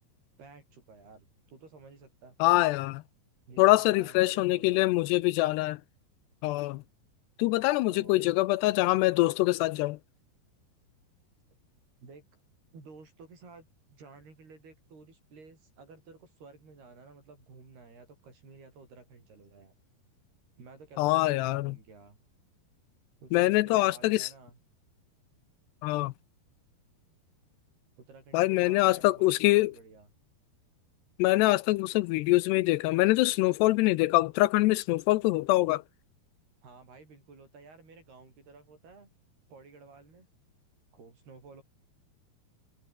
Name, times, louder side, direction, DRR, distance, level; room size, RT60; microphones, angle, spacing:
voice 1, 0.4-2.4 3.5-5.0 7.9-8.4 12.0-12.2 12.7-19.7 20.6-22.2 23.2-24.6 28.0-30.1 36.6-39.1 39.5-40.3 40.9-41.6, right 4 dB, 65° right, 9.9 m, -53 dB
voice 2, 2.4-3.0 3.6-5.8 6.4-6.8 7.4-10.0 21.0-21.7 23.3-24.3 25.8-26.1 28.3-29.7 31.2-35.8, left 19 dB, 80° left, 2.7 m, -24 dB
omnidirectional pair, 5.0 m